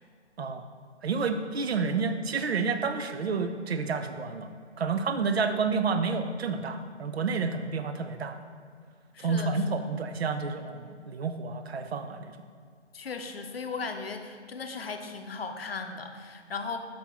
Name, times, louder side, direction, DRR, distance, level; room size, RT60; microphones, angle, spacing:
voice 1, 1.0-4.5 4.8-8.4 9.2-12.4, right 4 dB, 60° right, 8 dB, 0.6 m, -29 dB
voice 2, 9.1-9.8 12.9-16.8, left 4 dB, 55° left, 6 dB, 0.7 m, -37 dB
6.5 x 5.9 x 3.6 m, 2.1 s
figure-of-eight pair, 160°, 36 cm